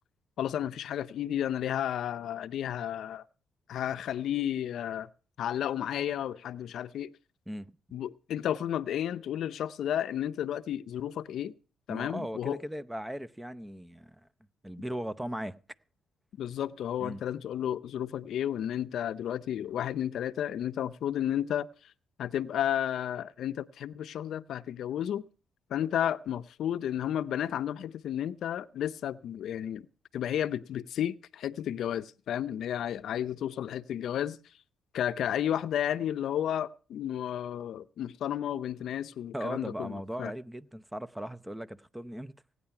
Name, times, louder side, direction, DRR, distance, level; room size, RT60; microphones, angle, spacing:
voice 1, 0.4-3.2 3.7-5.1 5.4-7.1 7.9-11.5 11.9-12.6 16.4-21.7 22.2-25.3 25.7-29.9 30.1-34.4 34.9-40.3, left 10 dB, 70° left, 0.6 m, -32 dB
voice 2, 11.9-14.2 14.6-15.6 17.0-17.2 39.3-42.3, equal, 10° right, 0.7 m, -38 dB
17.5 x 9.7 x 5.8 m
cardioid pair, 90°, 0 cm